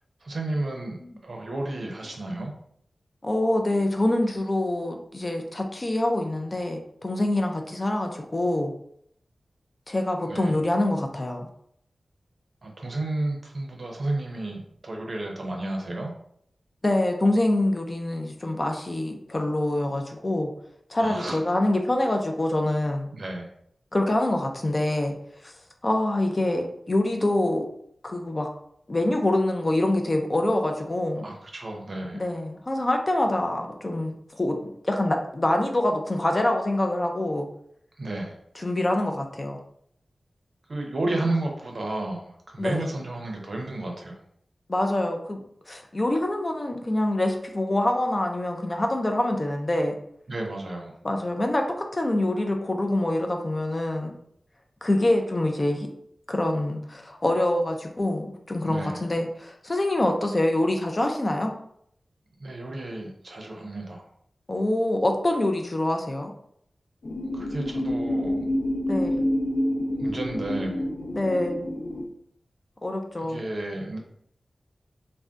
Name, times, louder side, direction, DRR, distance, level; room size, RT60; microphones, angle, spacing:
voice 1, 0.2-2.5 10.3-10.6 12.6-16.1 21.0-21.4 23.1-23.5 31.2-32.2 38.0-38.4 40.7-44.2 50.3-50.9 58.7-59.0 62.4-64.0 67.3-68.5 70.0-70.8 73.2-74.0, right 2 dB, 55° right, 1 dB, 0.6 m, -32 dB
voice 2, 3.2-8.7 9.9-11.5 16.8-20.5 20.9-23.1 23.9-25.2 25.4-25.5 25.8-27.7 28.0-28.5 28.9-31.3 32.1-37.5 38.6-39.6 42.6-42.9 44.7-50.0 51.0-54.1 54.8-55.9 56.3-61.5 64.5-66.3 68.9-69.3 71.1-71.6 72.8-73.4, left 1 dB, 30° left, 4 dB, 0.3 m, -25 dB
sound 1, 67.0-72.0, left 1 dB, 80° left, 0.6 m, -28 dB
2.5 x 2.1 x 3.4 m, 0.69 s
wide cardioid pair, 110°, 0 cm